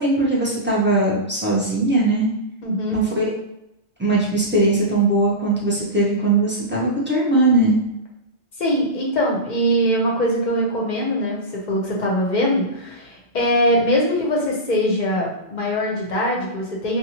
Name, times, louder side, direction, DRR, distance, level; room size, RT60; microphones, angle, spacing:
voice 1, 0.0-2.3 2.9-3.2 4.0-7.8, right 2 dB, 15° right, -6 dB, 0.4 m, -19 dB
voice 2, 2.6-3.0 8.6-17.0, equal, 50° left, -2 dB, 0.7 m, -22 dB
2.7 x 2.3 x 2.8 m, 0.87 s
omnidirectional pair, 1.2 m